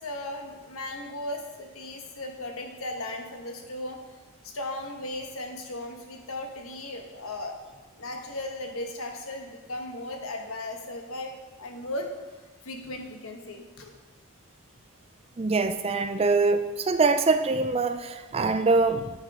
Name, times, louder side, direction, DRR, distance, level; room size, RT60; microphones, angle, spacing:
voice 1, 0.0-4.2 4.4-7.6 8.0-11.3 11.6-12.1 12.6-13.9, left 1 dB, 70° left, 3 dB, 1.3 m, -36 dB
voice 2, 15.4-19.1, right 3 dB, 25° right, 9 dB, 0.4 m, -24 dB
9.4 x 6.2 x 4.9 m, 1.3 s
head